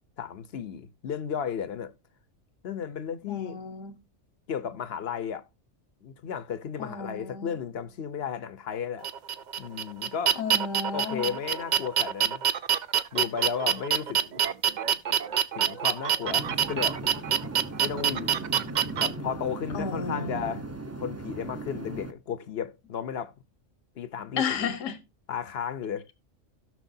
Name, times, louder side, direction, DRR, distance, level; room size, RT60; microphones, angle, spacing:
voice 1, 0.2-1.9 2.6-3.6 4.5-5.5 6.0-9.1 9.6-10.4 10.9-12.4 13.1-14.4 14.9-15.0 15.6-17.1 17.8-18.4 19.0-20.7 21.0-23.3 24.0-24.7 25.3-26.0, left 7 dB, 55° left, 0.9 m, -34 dB
voice 2, 3.3-3.9 6.8-7.5 10.4-11.3 19.7-20.6 24.4-25.0, left 5 dB, 80° left, 1.4 m, -33 dB
sound 1, 9.0-19.1, right 9 dB, 55° right, 0.5 m, -26 dB
sound 2, 16.3-22.1, right 2 dB, 15° right, 0.7 m, -37 dB
17.0 x 6.2 x 2.7 m
omnidirectional pair, 1.3 m